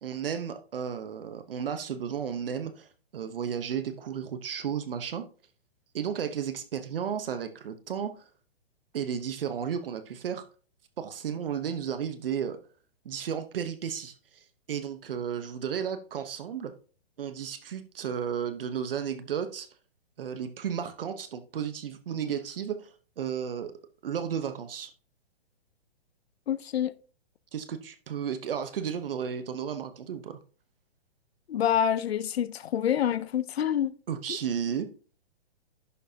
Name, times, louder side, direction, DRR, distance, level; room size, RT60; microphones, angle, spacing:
voice 1, 0.0-5.3 5.9-8.2 8.9-10.5 11.0-12.6 13.0-16.7 17.2-19.7 20.2-23.7 24.0-24.9 27.5-30.4 34.1-34.9, right 8 dB, 60° right, 1.0 m, -33 dB
voice 2, 26.5-26.9 31.5-33.9, left 9 dB, 75° left, 0.7 m, -27 dB
11.0 x 6.5 x 2.8 m
hypercardioid pair, 165°, 31 cm